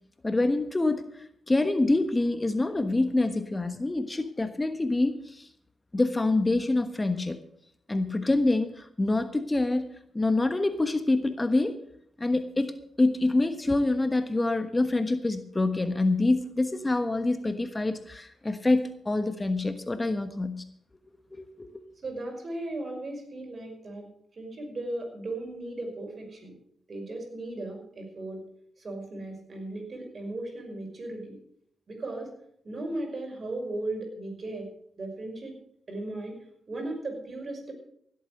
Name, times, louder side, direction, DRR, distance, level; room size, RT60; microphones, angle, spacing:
voice 1, 0.2-1.0 1.5-5.5 5.9-7.4 7.9-9.8 10.1-11.8 12.2-12.7 13.0-20.6 21.3-21.8, left 2 dB, 25° left, 10 dB, 1.2 m, -26 dB
voice 2, 22.0-26.6 26.9-28.4 28.8-31.4 31.9-32.3 32.6-34.7 35.0-35.6 35.9-36.4 36.7-37.7, right 2 dB, 50° right, 2 dB, 5.6 m, -36 dB
17.0 x 8.1 x 6.4 m, 0.71 s
supercardioid pair, 50°, 0 cm